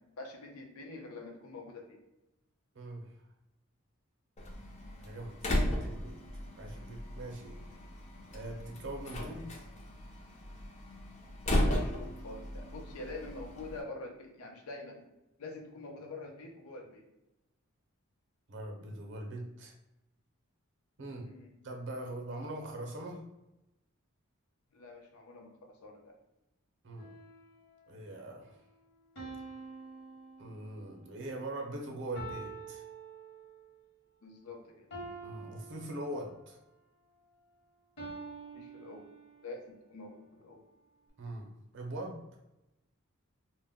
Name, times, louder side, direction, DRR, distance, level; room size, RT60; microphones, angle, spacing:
voice 1, 0.0-2.0 11.6-15.1 15.4-17.0 21.2-21.5 24.7-26.1 34.2-34.9 38.5-39.0 39.4-40.6, left 2 dB, 90° left, 2 dB, 0.6 m, -46 dB
voice 2, 2.7-3.1 5.0-6.2 6.6-7.6 8.3-9.7 18.5-19.7 21.0-21.3 21.6-23.2 26.8-27.1 27.9-28.6 30.4-32.8 35.2-36.6 41.2-41.5 41.7-42.2, right 1 dB, 55° right, 2 dB, 0.6 m, -42 dB
Slam, 4.4-13.8, left 1 dB, 30° left, 0.4 m, -36 dB
sound 1, 27.0-27.8 29.2-31.0 32.2-33.8 34.9-36.6 38.0-39.6, right 3 dB, 55° left, 0.9 m, -47 dB
2.1 x 2.1 x 3.4 m, 0.94 s
head